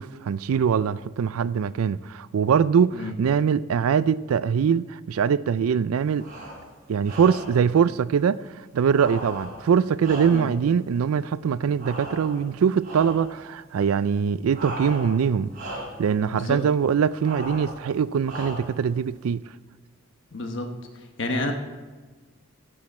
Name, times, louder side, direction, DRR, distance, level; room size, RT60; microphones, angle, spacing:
voice 1, 0.0-6.2 6.9-8.4 8.7-15.5 16.0-19.4, right 7 dB, 85° right, 0.4 m, -22 dB
sound 1, 6.1-6.7 7.0-7.7 8.9-10.7 11.8-12.5 12.8-13.3 14.5-15.3 15.5-16.1 17.2-17.8 18.2-18.8, right 1 dB, 40° right, 4.2 m, -37 dB
voice 2, 20.3-20.7 21.2-21.5, left 2 dB, 60° left, 1.1 m, -29 dB
15.0 x 7.8 x 4.3 m
head